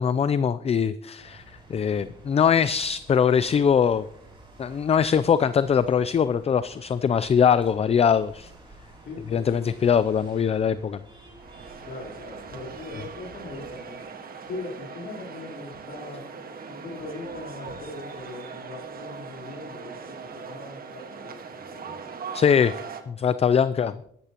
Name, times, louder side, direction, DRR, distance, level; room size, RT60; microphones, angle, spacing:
voice 1, 0.0-1.4 1.7-4.1 4.6-8.5 9.3-11.0 22.3-22.7 23.1-23.9, left 7 dB, 30° left, 15 dB, 0.4 m, -22 dB
sound 1, 1.2-13.8, right 2 dB, 25° right, 4.5 m, -50 dB
voice 2, 9.0-10.0 11.8-14.0 14.4-16.2 16.7-21.9 23.7-23.8, left 2 dB, 75° left, -5 dB, 3.8 m, -40 dB
sound 2, 11.3-23.0, right 5 dB, 50° right, 1.5 m, -40 dB
13.5 x 12.5 x 2.9 m, 0.70 s
cardioid pair, 90°, 20 cm